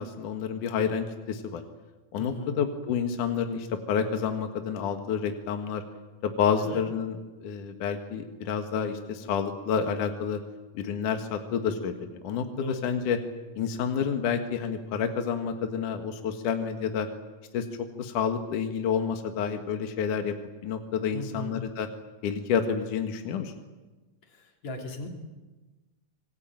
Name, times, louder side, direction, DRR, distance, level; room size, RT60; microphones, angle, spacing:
voice 1, 0.0-1.6 2.1-5.8 6.2-7.2 7.4-10.4 10.7-13.2 13.6-17.1 17.5-20.3 20.6-21.9 22.2-23.5, left 7 dB, 70° left, 6 dB, 3.1 m, -29 dB
voice 2, 2.2-2.6 6.6-6.8 12.5-12.8 21.1-21.6 24.3-25.1, left 1 dB, 55° left, 3 dB, 4.4 m, -38 dB
26.0 x 22.0 x 9.0 m, 1.2 s
omnidirectional pair, 3.8 m